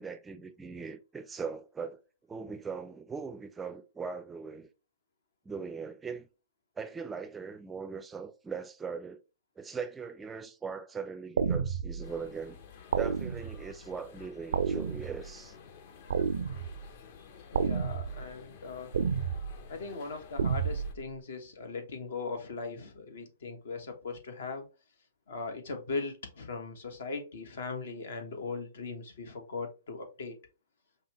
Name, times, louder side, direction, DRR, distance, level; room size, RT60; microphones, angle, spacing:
voice 1, 0.0-2.0 2.3-4.7 5.4-6.3 6.8-9.2 9.6-12.6 13.0-15.6, right 5 dB, 10° right, 0.4 m, -40 dB
sound 1, 11.4-12.1 12.9-13.7 14.5-15.4 16.1-16.9 17.5-18.3 18.9-19.6 20.4-21.0, right 6 dB, 80° right, 0.4 m, -31 dB
sound 2, 12.0-20.9, left 6 dB, 55° left, 0.8 m, -52 dB
voice 2, 17.5-18.9 19.7-24.7 25.3-30.3, left 4 dB, 75° left, 1.1 m, -39 dB
5.4 x 2.1 x 3.0 m
hypercardioid pair, 135°, 0 cm